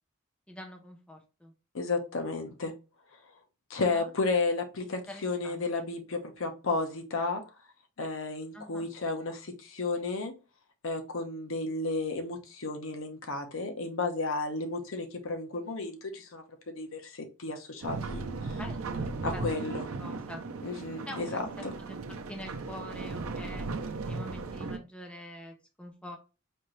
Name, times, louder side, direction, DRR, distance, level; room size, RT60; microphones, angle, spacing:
voice 1, 0.5-1.5 3.7-4.1 4.9-5.9 8.5-8.9 18.6-19.6 19.9-20.4 21.1-23.7 24.0-26.2, left 1 dB, 5° left, 0.6 m, -45 dB
voice 2, 1.7-2.7 3.7-7.4 8.0-10.3 10.8-18.2 18.5-18.6 19.2-19.9 20.6-21.7, left 3 dB, 70° left, 0.8 m, -33 dB
sound 1, 17.8-24.8, right 3 dB, 80° right, 0.5 m, -37 dB
4.3 x 2.6 x 3.1 m
head